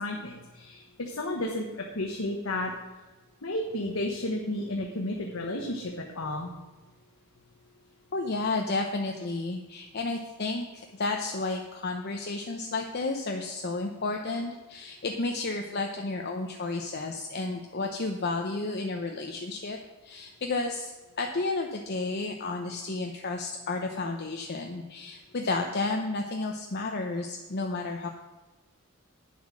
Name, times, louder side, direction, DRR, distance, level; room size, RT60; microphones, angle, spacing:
voice 1, 0.0-2.7 3.4-6.5, left 1 dB, 90° left, 0 dB, 1.3 m, -32 dB
voice 2, 8.1-19.8 20.0-28.1, left 3 dB, 50° left, 3 dB, 0.8 m, -32 dB
9.5 x 7.3 x 6.2 m, 1.2 s
head